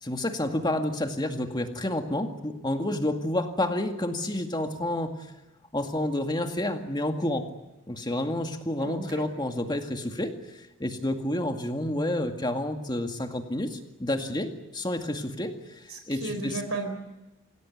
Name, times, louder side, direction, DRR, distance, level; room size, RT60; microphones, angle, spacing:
voice 1, 0.0-5.1 5.7-7.5 7.9-16.6, left 1 dB, 20° left, 5 dB, 2.1 m, -29 dB
voice 2, 8.8-9.2 15.9-16.9, right 3 dB, 70° right, 6 dB, 4.4 m, -34 dB
26.5 x 17.5 x 9.5 m, 1.0 s
head